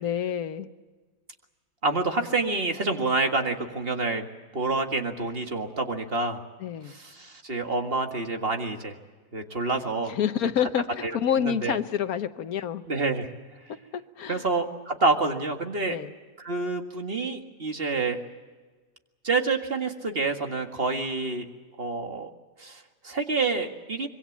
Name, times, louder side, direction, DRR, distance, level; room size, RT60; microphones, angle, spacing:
voice 1, 0.0-0.7 6.6-6.9 10.1-12.8 13.9-14.4 15.9-16.1, left 9 dB, 90° left, 11 dB, 1.5 m, -28 dB
voice 2, 1.8-4.3 4.5-6.4 6.9-9.0 9.3-10.1 11.0-11.1 11.4-11.8 12.9-13.3 14.3-16.0 16.4-18.2 19.2-21.5 21.8-22.3 22.6-24.1, right 3 dB, 40° right, 5 dB, 2.0 m, -27 dB
25.5 x 23.0 x 7.3 m, 1.4 s
omnidirectional pair, 1.5 m